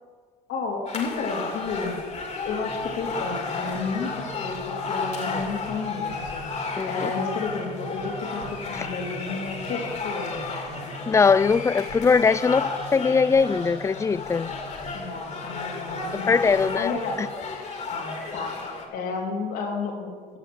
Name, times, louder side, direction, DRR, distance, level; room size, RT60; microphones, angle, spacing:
voice 1, 0.5-2.0 2.4-6.4 6.9-10.4 14.9-17.2 17.9-18.6 18.9-20.1, left 4 dB, 80° left, 3.5 m, -32 dB
sound 1, 0.9-18.9, left 3 dB, 40° left, 2.3 m, -33 dB
voice 2, 6.8-7.1 11.1-14.5 16.1-17.3, left 5 dB, 15° left, 0.4 m, -21 dB
14.5 x 6.5 x 8.0 m
cardioid pair, 110°, 17 cm